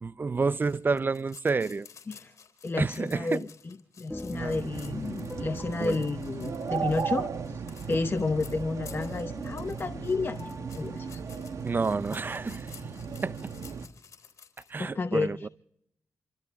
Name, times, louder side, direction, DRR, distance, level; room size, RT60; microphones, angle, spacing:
voice 1, 0.0-1.9 2.8-3.5 4.3-4.7 5.8-6.0 11.6-12.8 13.2-13.5 14.7-15.5, right 4 dB, 35° right, 0.6 m, -29 dB
sound 1, 0.6-14.7, left 7 dB, 65° left, 3.8 m, -53 dB
voice 2, 2.6-3.5 4.0-7.6 7.9-10.5 10.8-11.2 14.8-15.3, left 3 dB, 40° left, 0.9 m, -31 dB
sound 2, 4.1-13.7, left 1 dB, 10° left, 1.7 m, -46 dB
sound 3, 4.4-13.9, right 6 dB, 65° right, 1.4 m, -36 dB
28.5 x 13.5 x 3.6 m
supercardioid pair, 50°, 6 cm